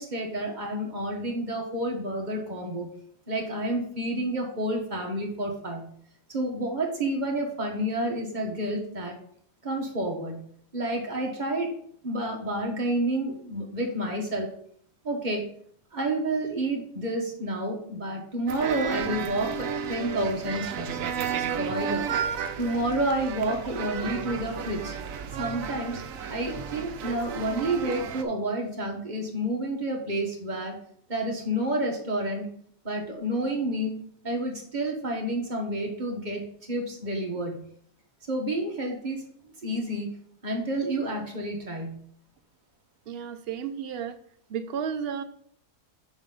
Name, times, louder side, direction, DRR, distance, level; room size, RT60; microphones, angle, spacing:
voice 1, 0.0-2.9 3.3-5.9 6.3-9.1 9.6-10.4 10.7-11.7 12.0-14.5 15.0-15.4 15.9-21.0 21.4-22.0 22.6-24.9 25.4-26.0 26.3-30.7 31.1-32.5 32.8-36.4 36.7-37.6 38.3-39.3 39.6-40.1 40.4-42.0, right 1 dB, 35° right, 1 dB, 1.6 m, -29 dB
sound 1, 18.5-28.2, right 7 dB, 85° right, 1.1 m, -33 dB
voice 2, 43.1-44.2 44.5-45.2, right 7 dB, 55° right, 9 dB, 0.8 m, -32 dB
7.0 x 6.1 x 3.9 m, 0.62 s
omnidirectional pair, 1.4 m